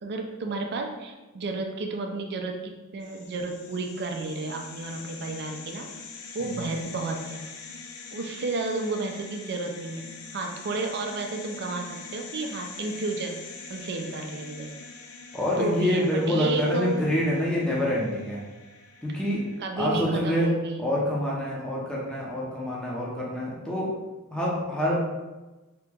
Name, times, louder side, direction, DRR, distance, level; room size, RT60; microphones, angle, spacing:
voice 1, 0.0-5.9 6.3-7.4 8.1-13.4 13.7-14.7 15.6-17.0 19.6-20.8, right 3 dB, 50° right, 3 dB, 0.5 m, -32 dB
sound 1, 3.0-19.6, left 4 dB, 75° left, 0.5 m, -44 dB
voice 2, 15.3-18.4 19.0-19.4 19.8-20.5 20.8-23.9 24.3-25.0, left 1 dB, 5° left, -6 dB, 0.6 m, -26 dB
2.9 x 2.8 x 3.5 m, 1.1 s
head